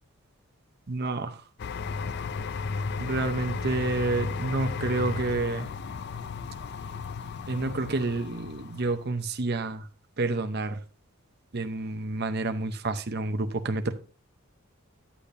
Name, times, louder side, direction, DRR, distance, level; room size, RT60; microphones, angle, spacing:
voice 1, 0.9-1.4 3.0-5.7 7.5-9.9 10.2-10.8 11.5-13.9, right 2 dB, 50° right, 0.7 m, -29 dB
sound 1, 1.6-9.1, left 5 dB, 50° left, 0.4 m, -34 dB
9.9 x 8.6 x 2.6 m
head